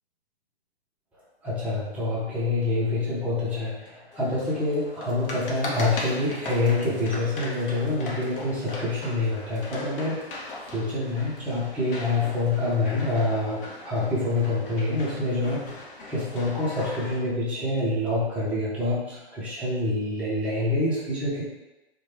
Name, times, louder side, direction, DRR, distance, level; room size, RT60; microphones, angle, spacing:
voice 1, 1.4-10.3 10.7-15.7 16.1-21.4, left 2 dB, 5° right, -9 dB, 0.5 m, -26 dB
sound 1, 4.1-17.2, left 2 dB, 55° left, 0.7 m, -39 dB
3.0 x 2.2 x 2.8 m, 1.0 s
figure-of-eight pair, 125°, 32 cm